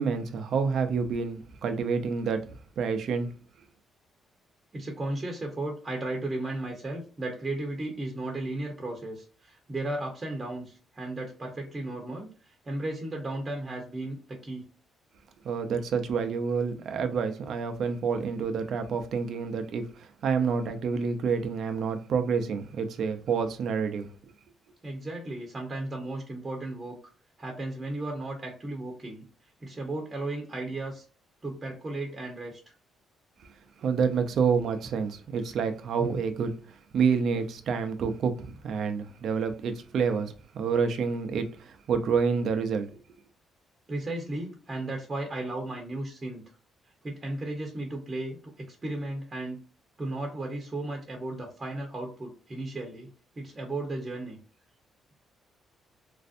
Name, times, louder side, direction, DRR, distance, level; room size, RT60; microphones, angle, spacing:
voice 1, 0.0-3.3 15.4-24.1 33.8-42.9, right 5 dB, 65° right, 0.6 m, -28 dB
voice 2, 4.7-14.6 24.8-27.0 27.4-29.2 29.6-31.0 31.4-32.6 43.9-46.4 47.0-49.6 50.0-53.1 53.3-54.4, right 2 dB, 25° right, 0.9 m, -35 dB
3.1 x 2.5 x 2.5 m
cardioid pair, 90°, 0 cm